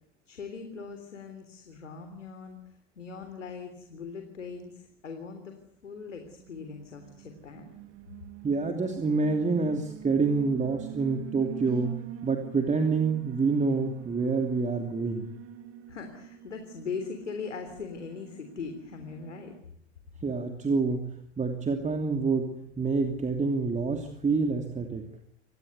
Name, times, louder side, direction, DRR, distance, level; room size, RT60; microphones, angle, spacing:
voice 1, 0.3-2.6 3.0-5.5 5.8-7.7 15.9-19.5, left 5 dB, 85° left, 6 dB, 3.4 m, -40 dB
Alarm, 6.1-19.6, right 11 dB, 40° right, 2.5 m, -45 dB
voice 2, 8.4-15.3 20.2-21.1 21.4-25.0, right 4 dB, 20° right, 5 dB, 2.9 m, -27 dB
26.5 x 19.5 x 8.2 m, 0.69 s
hypercardioid pair, 80°, 36 cm